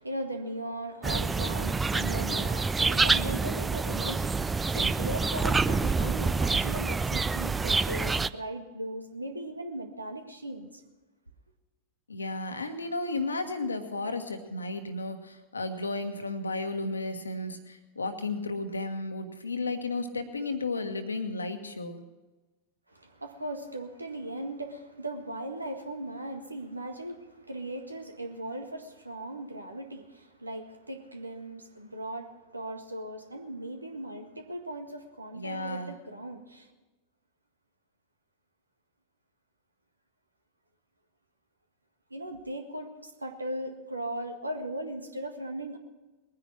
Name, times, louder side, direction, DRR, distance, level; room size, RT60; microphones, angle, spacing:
voice 1, 0.0-10.8 22.9-36.7 42.1-45.8, right 1 dB, 80° right, 5 dB, 1.7 m, -38 dB
sound 1, 1.0-8.3, right 4 dB, 10° right, 0.4 m, -27 dB
voice 2, 12.1-22.0 35.3-35.9, left 2 dB, 75° left, 7 dB, 1.5 m, -33 dB
21.0 x 9.9 x 6.0 m, 1.2 s
figure-of-eight pair, 90°, 0 cm